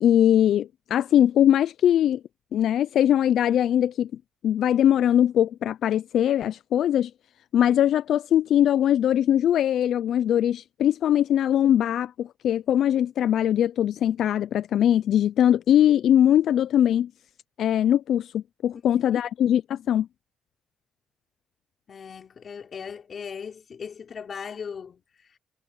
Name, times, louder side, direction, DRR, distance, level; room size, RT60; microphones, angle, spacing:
voice 1, 0.0-2.2 2.5-4.1 4.4-7.1 7.5-17.1 17.6-20.1, left 10 dB, 70° left, 0.3 m, -21 dB
voice 2, 21.9-25.0 25.3-25.4, left 6 dB, 50° left, 4.6 m, -38 dB
cardioid pair, 90°, 0 cm